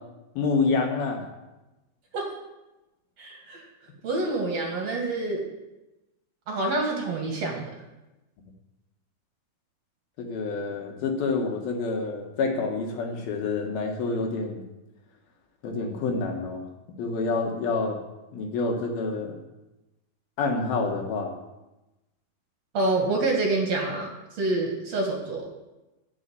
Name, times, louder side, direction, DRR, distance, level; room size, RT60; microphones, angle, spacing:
voice 1, 0.4-1.2 10.2-14.6 15.6-16.6 17.0-18.0 18.3-19.3 20.4-21.3, left 4 dB, 75° left, 2 dB, 3.3 m, -27 dB
voice 2, 3.2-3.7 4.0-5.4 6.5-7.7 22.7-24.1 24.3-25.5, right 2 dB, 55° right, 0 dB, 2.5 m, -27 dB
12.0 x 6.5 x 8.5 m, 1.0 s
omnidirectional pair, 4.4 m